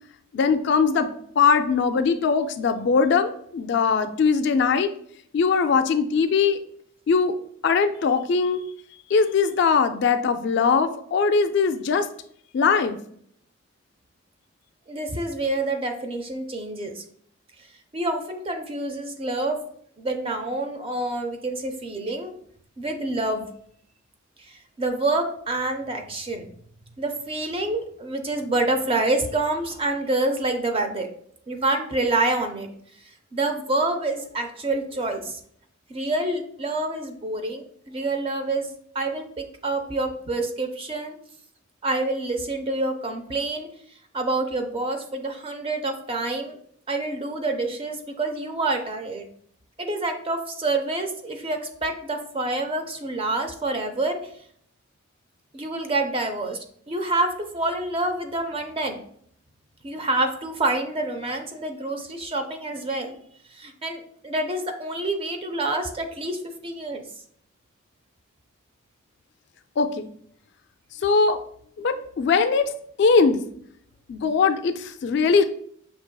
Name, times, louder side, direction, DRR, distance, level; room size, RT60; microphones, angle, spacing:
voice 1, 0.3-1.1 1.4-4.9 5.3-6.6 7.1-7.3 7.6-8.6 9.1-12.1 12.5-13.0 69.8-70.1 71.0-71.4 71.8-72.7 73.0-73.4 74.1-75.4, left 5 dB, 55° left, 10 dB, 0.3 m, -21 dB
voice 2, 14.9-17.0 17.9-19.6 20.0-22.3 22.8-23.5 24.4-26.5 27.0-31.1 31.5-32.7 33.3-35.4 35.9-38.7 38.9-41.1 41.8-43.7 44.1-46.6 46.9-49.2 49.8-54.2 55.5-56.6 56.9-59.0 59.8-63.2 63.5-67.0, right 2 dB, 25° right, 5 dB, 0.5 m, -27 dB
6.0 x 2.8 x 2.2 m, 0.65 s
head